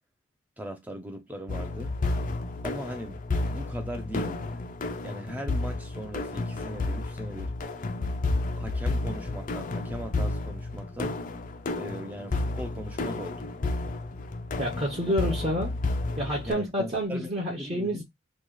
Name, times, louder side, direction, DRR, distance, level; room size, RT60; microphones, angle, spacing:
voice 1, 0.6-1.9 2.6-4.6 5.0-7.5 8.6-11.2 11.8-13.4 15.2-15.4 16.4-17.3 17.6-18.0, equal, 10° right, 0.5 m, -39 dB
sound 1, 1.5-16.5, left 2 dB, 40° left, 0.5 m, -31 dB
voice 2, 14.6-15.7 16.2-18.0, equal, 30° right, 0.8 m, -28 dB
3.0 x 2.4 x 3.7 m
head